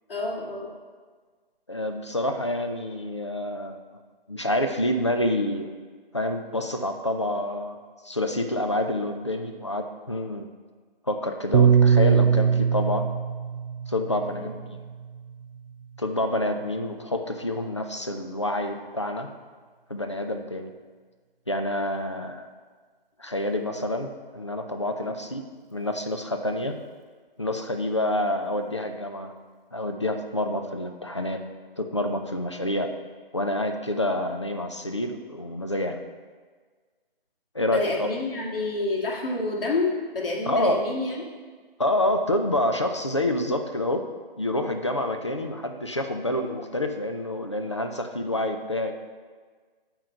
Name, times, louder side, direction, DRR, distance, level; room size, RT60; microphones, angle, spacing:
voice 1, 0.1-0.7 14.2-14.5 25.0-25.1 37.6-41.2, left 2 dB, 65° left, -3 dB, 2.1 m, -29 dB
voice 2, 1.7-3.8 4.3-5.7 6.1-10.5 11.1-13.1 13.9-14.5 16.0-19.3 19.9-20.7 21.5-22.5 23.2-25.4 25.7-26.8 27.4-29.3 29.7-31.4 31.8-32.9 33.3-36.0 37.5-38.1 40.5-40.9 41.8-44.1 44.4-48.9, left 1 dB, 30° left, 5 dB, 0.4 m, -27 dB
Piano, 11.5-16.0, right 7 dB, 70° right, 0.6 m, -22 dB
8.6 x 3.9 x 5.6 m, 1.5 s
hypercardioid pair, 165°, 30 cm